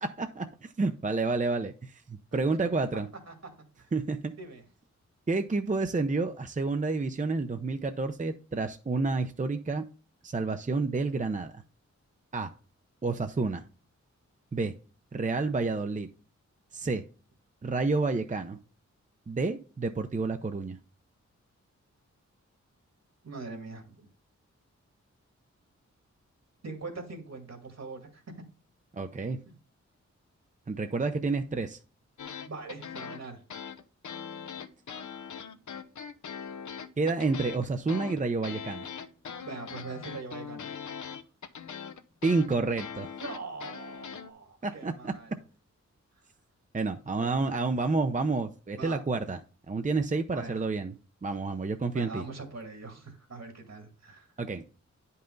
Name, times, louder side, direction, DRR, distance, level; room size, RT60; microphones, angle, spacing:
voice 1, 0.0-3.1 3.9-4.3 5.3-9.8 10.2-11.6 12.3-12.5 13.0-13.6 14.5-14.7 15.1-16.1 16.7-17.0 17.6-18.6 19.3-20.8 28.9-29.4 30.7-31.8 37.0-38.9 42.2-43.1 44.6-45.1 46.7-49.4 49.7-50.9 51.2-52.2 54.4-54.6, right 3 dB, 25° right, 7 dB, 0.7 m, -29 dB
voice 2, 23.2-24.0 26.6-28.2 29.5-29.6 32.4-33.4 39.4-40.7 43.2-45.4 47.2-47.7 48.8-49.0 50.3-50.7 51.9-54.3, right 3 dB, 60° right, 4 dB, 2.4 m, -42 dB
sound 1, 32.2-44.3, left 7 dB, 80° left, 0.9 m, -41 dB
10.0 x 5.5 x 3.9 m, 0.36 s
wide cardioid pair, 105°, 29 cm